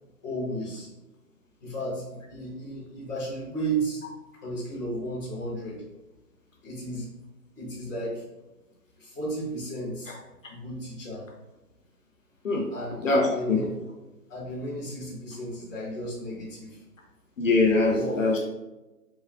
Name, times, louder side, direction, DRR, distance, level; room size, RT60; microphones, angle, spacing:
voice 1, 0.2-0.9 1.6-4.0 4.3-5.8 6.6-7.1 7.5-8.2 9.0-10.1 10.5-11.2 12.7-13.0 13.3-13.6 14.3-16.8 17.9-18.2, right 1 dB, 10° left, -15 dB, 0.8 m, -33 dB
voice 2, 13.0-13.6 17.4-18.4, left 3 dB, 55° left, -1 dB, 0.6 m, -22 dB
3.4 x 3.1 x 2.3 m, 1.0 s
hypercardioid pair, 165°, 47 cm